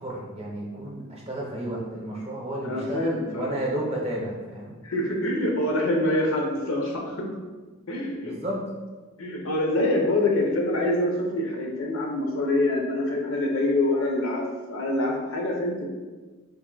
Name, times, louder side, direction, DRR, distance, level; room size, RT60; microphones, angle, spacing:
voice 1, 0.0-4.7 8.2-8.6, right 1 dB, 30° right, -3 dB, 0.7 m, -32 dB
voice 2, 2.6-3.5 4.8-7.3 7.9-8.4 9.2-15.9, left 1 dB, 65° left, 0 dB, 0.7 m, -25 dB
3.4 x 2.6 x 3.8 m, 1.3 s
head